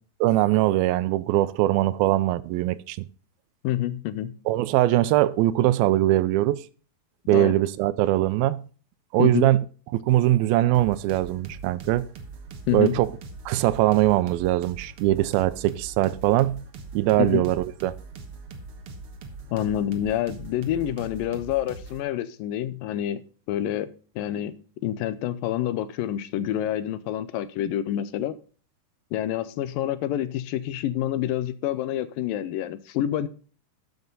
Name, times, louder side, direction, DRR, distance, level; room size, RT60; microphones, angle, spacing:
voice 1, 0.2-3.0 4.5-6.6 7.3-8.6 9.1-9.6 10.1-12.1 12.7-13.1 13.5-16.6 16.9-18.0, right 15 dB, 85° right, 2.4 m, -21 dB
voice 2, 3.6-4.3 7.3-7.5 9.2-9.5 12.7-13.0 17.2-17.4 19.5-23.2 23.5-24.5 24.8-28.4 29.1-33.3, left 12 dB, 75° left, 2.3 m, -27 dB
sound 1, 10.7-22.0, right 3 dB, 60° right, 1.6 m, -42 dB
12.5 x 8.0 x 3.9 m
omnidirectional pair, 4.2 m